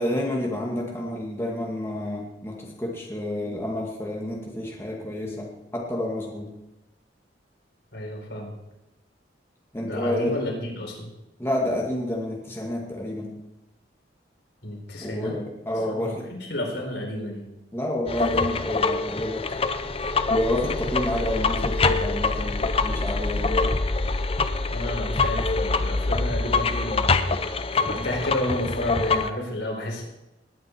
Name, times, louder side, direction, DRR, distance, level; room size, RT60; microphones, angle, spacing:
voice 1, 0.0-6.5 9.7-10.4 11.4-13.3 15.0-16.2 17.7-19.5 20.3-23.8, left 1 dB, 15° left, -2 dB, 2.2 m, -29 dB
voice 2, 7.9-8.5 9.8-11.1 14.6-15.3 15.9-17.4 24.7-27.4 27.7-30.0, left 1 dB, 75° left, -1 dB, 4.6 m, -31 dB
sound 1, 18.1-29.3, left 3 dB, 30° left, 0.7 m, -25 dB
20.0 x 9.4 x 4.7 m, 0.93 s
head